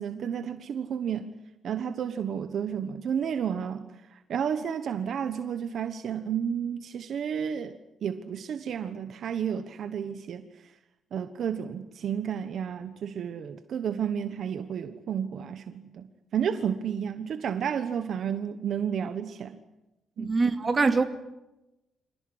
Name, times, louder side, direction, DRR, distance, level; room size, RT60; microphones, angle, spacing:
voice 1, 0.0-1.3 1.6-10.4 11.1-16.1 16.3-19.6 20.2-20.3, right 8 dB, 60° right, 1.3 m, -31 dB
voice 2, 20.2-21.0, right 4 dB, 30° right, 2.5 m, -23 dB
26.0 x 18.0 x 9.6 m
cardioid pair, 115°, 0 cm